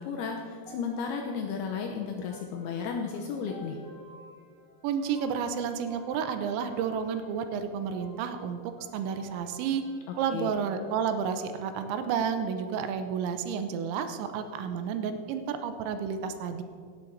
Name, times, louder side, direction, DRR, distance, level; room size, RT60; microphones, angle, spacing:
voice 1, 0.0-3.8 10.3-10.5, left 6 dB, 80° left, 2 dB, 2.3 m, -33 dB
sound 1, 0.6-11.9, equal, 25° left, 0.7 m, -54 dB
voice 2, 4.8-8.6 8.9-9.8 10.2-16.6, right 7 dB, 85° right, 8 dB, 3.0 m, -31 dB
17.0 x 7.8 x 4.6 m, 2.1 s
omnidirectional pair, 5.3 m